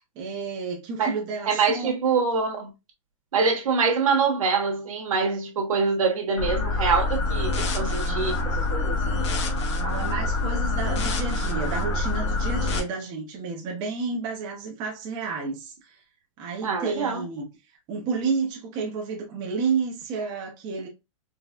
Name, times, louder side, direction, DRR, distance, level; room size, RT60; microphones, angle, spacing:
voice 1, 0.0-1.9 9.8-16.0 16.4-17.5 17.9-20.9, right 5 dB, 25° right, 0.7 m, -31 dB
voice 2, 1.5-2.7 3.3-9.2 16.6-17.2, right 5 dB, 85° right, 1.1 m, -25 dB
sound 1, 6.4-12.8, left 2 dB, 55° left, 1.0 m, -26 dB
4.0 x 2.1 x 2.3 m
supercardioid pair, 165°, 17 cm